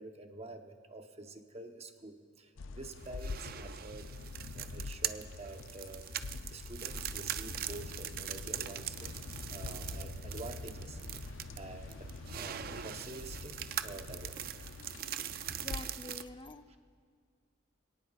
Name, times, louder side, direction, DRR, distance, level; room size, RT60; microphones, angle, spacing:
voice 1, 0.0-4.1 4.5-14.4 14.8-15.2 16.7-16.8, right 2 dB, 35° right, 5 dB, 0.9 m, -48 dB
sound 1, 2.6-15.9, left 4 dB, 75° left, 0.5 m, -45 dB
sound 2, 3.0-16.2, right 10 dB, 50° right, 0.4 m, -42 dB
voice 2, 15.5-16.8, left 2 dB, 25° left, 8 dB, 0.6 m, -47 dB
26.5 x 18.0 x 2.4 m, 2.1 s
head